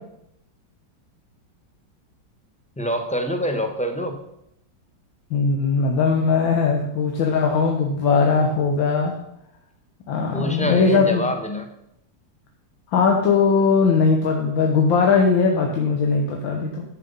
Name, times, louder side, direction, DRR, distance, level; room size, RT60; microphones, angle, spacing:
voice 1, 2.8-4.2 10.3-11.7, equal, 5° left, 5 dB, 0.7 m, -26 dB
voice 2, 5.3-9.1 10.1-11.3 12.9-16.8, left 5 dB, 85° left, 1 dB, 1.9 m, -19 dB
10.0 x 7.6 x 5.4 m, 0.79 s
omnidirectional pair, 2.0 m